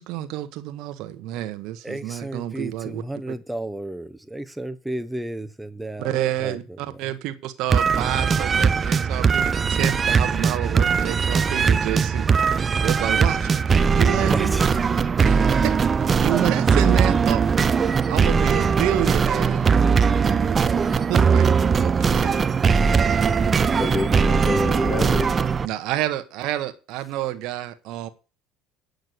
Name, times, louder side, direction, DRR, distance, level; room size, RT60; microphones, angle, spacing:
voice 1, 0.0-3.0 6.0-14.5 15.2-17.5 18.1-19.8 20.9-22.3 25.6-28.1, right 14 dB, 70° right, 1.2 m, -29 dB
voice 2, 1.8-6.6 14.2-14.7 22.0-22.5, right 1 dB, 5° right, 1.2 m, -33 dB
sound 1, 7.7-25.7, right 6 dB, 35° right, 0.7 m, -20 dB
voice 3, 23.4-25.4, left 3 dB, 30° left, 2.0 m, -28 dB
9.3 x 6.5 x 8.1 m
supercardioid pair, 85°, 0 cm